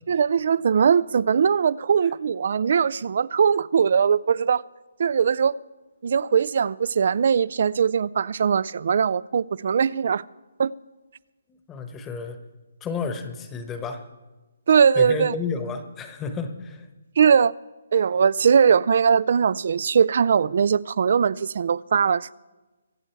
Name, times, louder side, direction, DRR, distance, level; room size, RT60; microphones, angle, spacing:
voice 1, 0.1-4.6 5.0-5.5 6.0-10.2 10.6-10.7 14.7-15.3 17.2-17.5 17.9-22.3, right 7 dB, 55° right, 0.3 m, -20 dB
voice 2, 11.7-12.4 12.8-14.0 14.9-16.9, left 5 dB, 15° left, 1.1 m, -31 dB
23.0 x 7.9 x 4.6 m
hypercardioid pair, 155°, 0 cm